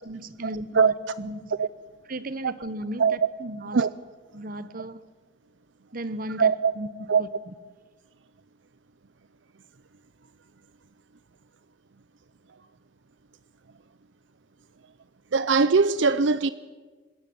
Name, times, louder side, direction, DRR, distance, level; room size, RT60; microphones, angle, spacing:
voice 1, 0.0-1.5 2.1-3.9 4.3-5.0 5.9-7.5, right 1 dB, 50° right, 1.1 m, -36 dB
voice 2, 6.4-6.7 7.1-7.2 15.3-16.5, right 5 dB, 80° right, 0.6 m, -20 dB
25.5 x 14.0 x 9.5 m
head